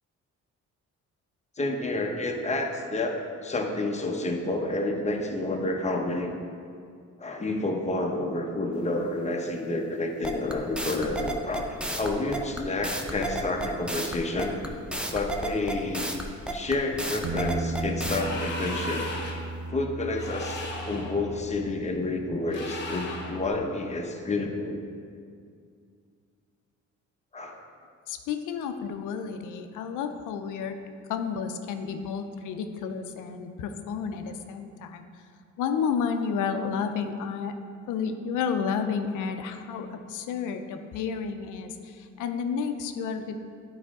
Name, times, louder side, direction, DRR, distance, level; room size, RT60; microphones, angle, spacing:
voice 1, 1.6-6.3 7.2-14.6 15.1-16.1 16.5-19.1 19.7-24.8 27.3-27.6, left 2 dB, 20° left, 2 dB, 0.9 m, -29 dB
sound 1, 10.2-18.2, right 1 dB, 5° right, 0.6 m, -32 dB
Bass guitar, 17.2-23.5, right 2 dB, 60° right, 0.6 m, -36 dB
sound 2, 18.0-19.5 20.1-21.2 22.5-23.4, left 2 dB, 35° left, 1.3 m, -36 dB
voice 2, 28.1-30.8 31.1-35.2 35.6-37.5 37.9-43.3, left 6 dB, 85° left, 7 dB, 0.6 m, -31 dB
9.4 x 4.9 x 3.6 m, 2.3 s
cardioid pair, 90°, 30 cm